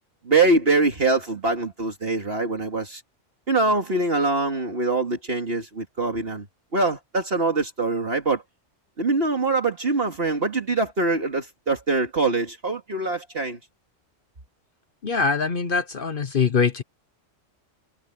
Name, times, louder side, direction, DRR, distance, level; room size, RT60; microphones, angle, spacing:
voice 1, 0.2-3.0 3.5-6.5 6.7-8.4 9.0-13.6, right 3 dB, 50° right, 2.3 m, -23 dB
voice 2, 15.0-16.8, left 5 dB, 50° left, 1.0 m, -23 dB
omnidirectional pair, 1.3 m